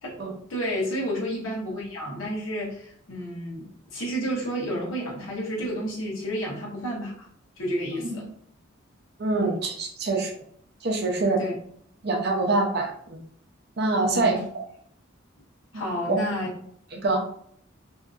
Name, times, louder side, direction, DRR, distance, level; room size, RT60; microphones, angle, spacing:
voice 1, 0.5-7.3 7.6-8.2 9.3-9.6 11.4-11.5 14.1-14.4 15.7-16.5, equal, 80° left, -3 dB, 0.9 m, -31 dB
voice 2, 9.2-10.3 10.8-11.4 12.0-13.2 13.8-14.4 15.7-16.2 16.9-17.2, right 3 dB, 55° right, 1 dB, 0.6 m, -25 dB
2.7 x 2.5 x 2.4 m, 0.65 s
head